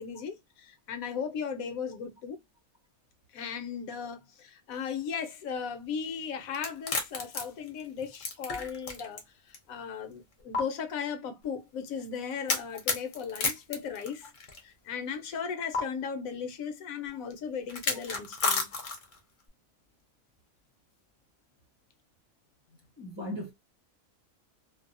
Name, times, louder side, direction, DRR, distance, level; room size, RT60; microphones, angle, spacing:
voice 1, 0.0-2.4 3.3-9.2 9.7-14.3 14.6-18.7, left 6 dB, 75° left, 1.0 m, -36 dB
sound 1, 6.5-9.2 9.5-9.6 10.5-10.6 12.5-14.6 15.7-15.8 17.7-19.2, left 4 dB, 45° left, 0.7 m, -31 dB
voice 2, 23.0-23.5, left 1 dB, 25° right, 0.8 m, -37 dB
2.7 x 2.0 x 2.5 m
omnidirectional pair, 1.5 m